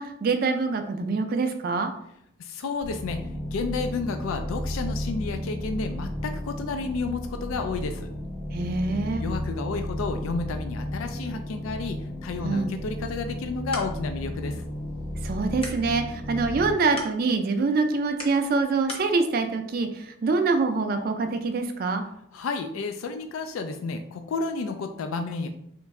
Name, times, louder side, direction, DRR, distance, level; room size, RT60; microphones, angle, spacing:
voice 1, 0.0-1.9 8.5-9.2 12.4-12.7 15.2-22.0, right 4 dB, 45° right, 6 dB, 0.3 m, -25 dB
voice 2, 2.4-8.1 9.2-14.6 22.3-25.5, left 4 dB, 85° left, 7 dB, 0.4 m, -31 dB
sound 1, 2.8-16.7, left 1 dB, 60° left, 1.1 m, -33 dB
sound 2, 13.4-19.1, left 2 dB, 25° left, 0.6 m, -43 dB
3.2 x 3.0 x 3.5 m, 0.74 s
head